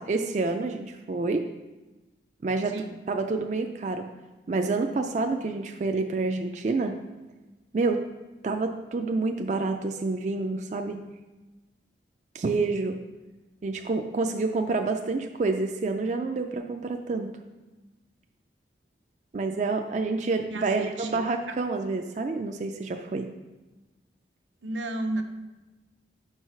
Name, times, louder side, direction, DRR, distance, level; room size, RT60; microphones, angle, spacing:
voice 1, 0.0-1.5 2.4-4.0 4.5-7.0 7.7-8.1 8.4-11.0 12.3-13.0 13.6-17.3 19.3-23.3, right 3 dB, 40° right, 4 dB, 0.3 m, -28 dB
voice 2, 20.5-21.2 21.5-21.6 24.6-25.2, right 2 dB, 85° right, 4 dB, 0.7 m, -32 dB
5.6 x 4.7 x 5.5 m, 1.1 s
head